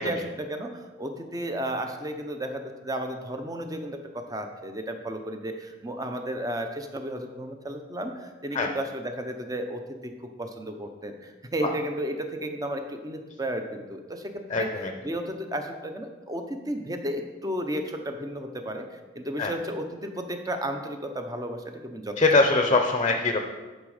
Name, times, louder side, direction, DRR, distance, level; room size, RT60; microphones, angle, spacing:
voice 1, 0.0-14.7 15.0-22.7, right 1 dB, 20° right, 5 dB, 0.8 m, -33 dB
voice 2, 14.5-14.9 19.4-19.5 22.2-23.4, left 3 dB, 30° left, 4 dB, 0.7 m, -22 dB
10.5 x 5.3 x 5.0 m, 1.3 s
head